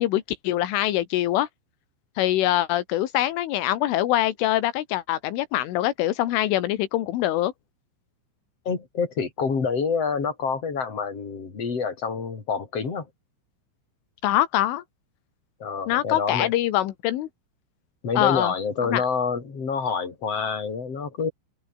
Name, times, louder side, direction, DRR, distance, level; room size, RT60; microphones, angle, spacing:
voice 1, 0.0-1.5 2.2-7.5 14.2-14.8 15.9-17.3 18.2-18.5 18.8-19.0, left 14 dB, 85° left, 4.0 m, -24 dB
voice 2, 8.7-13.1 15.6-16.5 18.0-21.3, left 5 dB, 30° left, 5.5 m, -27 dB
omnidirectional pair, 5.5 m